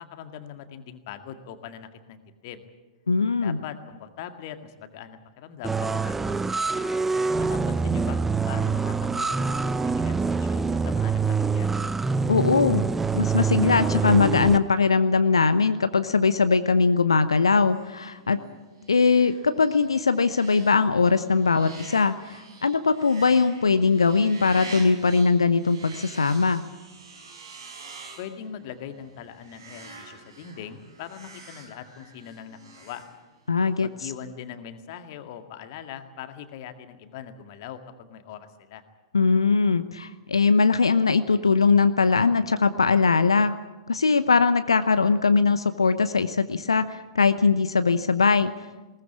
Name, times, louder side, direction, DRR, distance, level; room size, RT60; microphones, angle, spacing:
voice 1, 0.0-2.6 3.4-6.4 7.4-11.7 28.2-33.0 33.8-38.8, left 9 dB, 45° left, 7 dB, 2.0 m, -41 dB
voice 2, 3.1-3.6 12.3-12.8 13.1-18.4 18.9-26.6 33.5-33.9 39.1-43.6 43.9-48.5, left 4 dB, 75° left, 12 dB, 0.9 m, -21 dB
sound 1, 5.6-14.6, right 4 dB, 10° right, 0.7 m, -25 dB
sound 2, 17.7-33.6, right 3 dB, 60° right, 5.5 m, -47 dB
21.0 x 19.0 x 8.5 m, 1.2 s
figure-of-eight pair, 100°, 3 cm